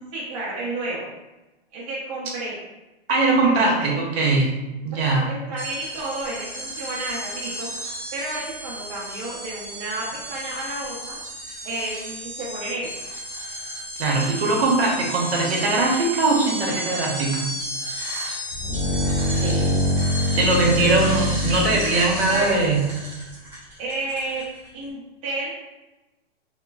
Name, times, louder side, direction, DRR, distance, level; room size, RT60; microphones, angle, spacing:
voice 1, 0.1-1.1 1.7-2.6 3.4-4.0 4.9-7.7 8.1-11.2 11.6-13.0 18.7-19.8 21.5-22.6 23.8-24.4 24.7-25.5, right 2 dB, 40° right, -8 dB, 0.8 m, -31 dB
voice 2, 3.1-4.5 4.8-5.2 14.0-17.5 20.3-22.9, right 3 dB, 65° right, -2 dB, 1.0 m, -21 dB
sound 1, 5.6-24.7, equal, 5° right, 0.3 m, -33 dB
sound 2, 18.5-22.9, left 1 dB, 50° left, 0.6 m, -24 dB
2.9 x 2.0 x 2.3 m, 1.0 s
hypercardioid pair, 145°, 32 cm